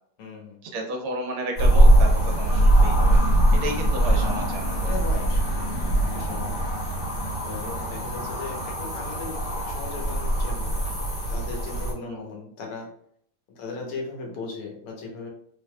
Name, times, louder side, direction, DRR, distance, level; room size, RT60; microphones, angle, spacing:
voice 1, 0.2-0.6 3.7-3.8 4.9-5.8 6.1-7.0 7.4-10.8 11.3-12.9 13.6-15.3, left 4 dB, 75° left, 0 dB, 1.8 m, -37 dB
voice 2, 0.7-3.2 3.5-4.9 7.6-7.9 12.0-12.2, right 1 dB, 75° right, 2 dB, 1.4 m, -33 dB
sound 1, 1.6-11.9, right 1 dB, 45° left, 1.4 m, -22 dB
3.8 x 3.3 x 2.2 m, 0.67 s
omnidirectional pair, 2.4 m